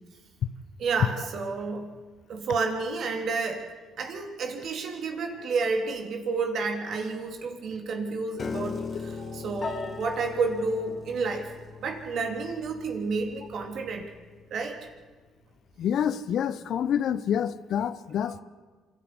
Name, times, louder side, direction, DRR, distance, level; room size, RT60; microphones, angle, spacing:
voice 1, 0.8-1.9 2.3-3.7 4.0-11.5 11.8-14.1 14.5-14.8 18.2-18.4, right 4 dB, 60° right, 3.4 m, -30 dB
Piano, 8.4-14.6, left 5 dB, 45° left, 1.7 m, -39 dB
voice 2, 15.8-18.4, left 9 dB, 65° left, 0.9 m, -27 dB
26.5 x 12.0 x 9.8 m
supercardioid pair, 65°, 0 cm